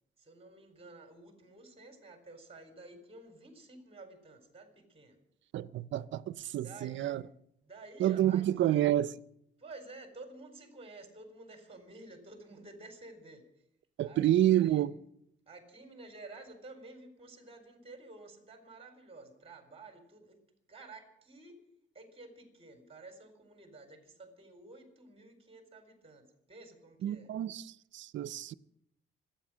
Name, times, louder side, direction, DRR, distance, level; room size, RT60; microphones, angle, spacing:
voice 1, 0.2-5.2 6.6-7.2 7.6-8.9 9.6-13.4 14.0-14.9 15.5-20.4 20.7-21.6 21.9-27.3, right 2 dB, 30° right, 4.1 m, -52 dB
voice 2, 5.5-7.2 8.0-9.1 14.0-14.9 27.0-28.5, right 12 dB, 70° right, 0.6 m, -29 dB
25.0 x 9.0 x 6.2 m
cardioid pair, 90°, 20 cm